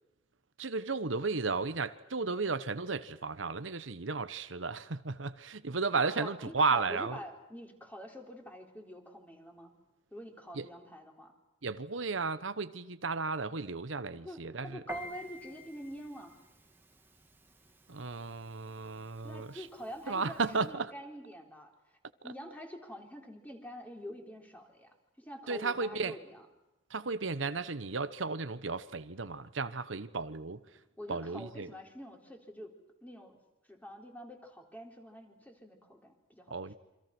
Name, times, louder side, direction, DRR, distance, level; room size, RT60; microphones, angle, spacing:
voice 1, 0.6-7.2 10.5-10.7 11.6-14.8 17.9-19.7 20.1-20.9 25.5-26.2 26.9-30.6 31.1-31.7 36.5-36.7, right 4 dB, 90° right, 1.1 m, -34 dB
voice 2, 6.1-9.7 10.1-11.4 14.2-16.4 19.2-21.7 22.2-26.4 31.0-33.4 33.7-36.6, equal, 10° left, 4.1 m, -46 dB
Piano, 14.9-20.7, equal, 10° right, 2.7 m, -51 dB
28.0 x 26.0 x 6.1 m
head